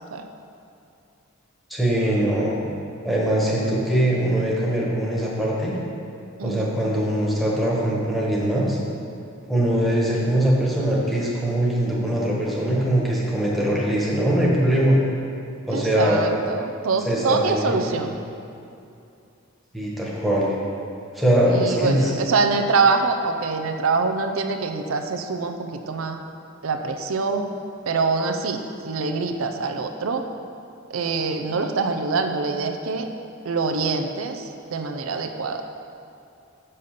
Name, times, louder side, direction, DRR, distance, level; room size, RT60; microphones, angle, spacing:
voice 1, 1.7-2.6 3.0-5.7 6.4-8.8 9.5-15.0 15.7-16.3 17.1-17.9 19.7-20.5 21.1-22.2, right 1 dB, ahead, -5 dB, 1.5 m, -22 dB
voice 2, 6.4-6.8 15.7-18.1 21.5-26.2 26.6-27.5 27.9-30.2 30.9-33.1 33.4-35.6, right 4 dB, 85° right, 5 dB, 0.6 m, -24 dB
6.7 x 5.5 x 6.7 m, 2.6 s
head